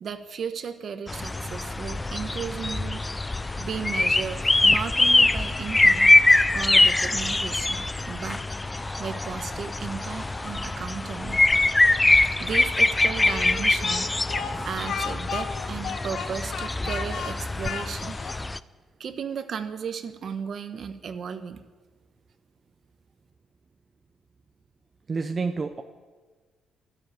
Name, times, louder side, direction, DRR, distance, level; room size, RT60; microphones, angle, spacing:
voice 1, 0.0-3.0 3.6-6.1 6.5-8.4 9.0-11.4 12.4-14.1 14.6-18.2 19.0-21.6, right 6 dB, 55° right, 9 dB, 1.2 m, -35 dB
sound 1, 1.1-18.6, left 2 dB, 15° left, 0.5 m, -23 dB
Speech, 13.3-18.4, left 6 dB, 65° left, 1.2 m, -34 dB
voice 2, 25.1-25.8, right 4 dB, 35° right, 6 dB, 0.8 m, -28 dB
12.5 x 10.0 x 9.3 m, 1.4 s
cardioid pair, 90°, 0 cm